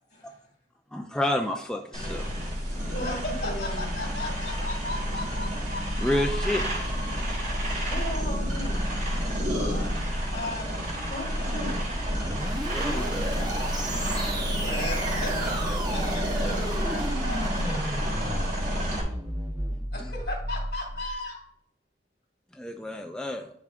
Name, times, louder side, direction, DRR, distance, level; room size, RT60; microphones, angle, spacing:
voice 1, 0.9-2.3 2.8-2.9 6.0-6.6 12.7-13.5 20.0-20.1 22.5-23.5, left 1 dB, 5° left, 3 dB, 0.4 m, -30 dB
voice 2, 1.9-2.3 2.9-7.2 9.2-9.9 10.3-10.7 12.2-12.3 12.9-18.8 19.9-21.4, left 2 dB, 75° left, 0 dB, 2.6 m, -38 dB
sound 1, 1.9-19.0, equal, 45° right, 1.6 m, -29 dB
voice 3, 2.9-3.9 7.8-8.8 11.1-11.8, equal, 45° left, -3 dB, 2.7 m, -36 dB
sound 2, 12.0-21.1, right 1 dB, 25° right, 0.8 m, -34 dB
10.5 x 4.8 x 2.5 m, 0.68 s
head